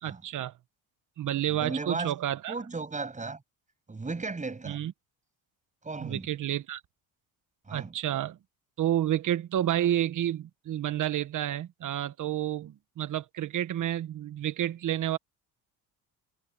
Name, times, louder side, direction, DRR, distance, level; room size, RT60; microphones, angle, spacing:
voice 1, 0.0-0.5 1.2-2.5 4.6-4.9 6.0-6.8 7.7-8.4 8.8-15.2, right 12 dB, 50° right, 1.1 m, -30 dB
voice 2, 1.5-2.1 2.5-3.4 3.9-4.8 5.8-6.3 7.7-7.9, right 3 dB, 20° right, 7.7 m, -35 dB
cardioid pair, 120°, 38 cm